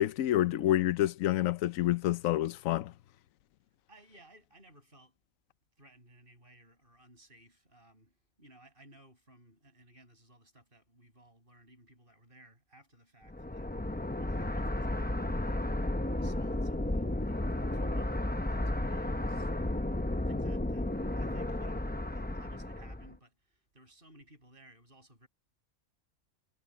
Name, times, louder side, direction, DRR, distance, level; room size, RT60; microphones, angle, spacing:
voice 1, 0.0-2.9, left 13 dB, 80° left, 1.1 m, -28 dB
voice 2, 3.9-5.2 5.8-13.7 14.2-19.9 20.3-25.3, right 1 dB, 40° right, 7.8 m, -59 dB
sound 1, 13.3-23.1, left 1 dB, 10° left, 0.6 m, -33 dB
omnidirectional pair, 1.4 m